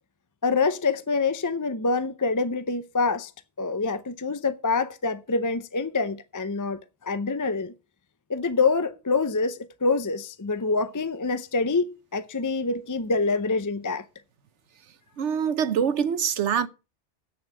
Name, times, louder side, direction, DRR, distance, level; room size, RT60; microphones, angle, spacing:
voice 1, 0.4-3.3 3.6-7.7 8.3-14.1, left 4 dB, 25° left, 0.4 m, -26 dB
voice 2, 15.2-16.7, right 8 dB, 80° right, 1.1 m, -24 dB
8.6 x 6.7 x 7.3 m
omnidirectional pair, 1.2 m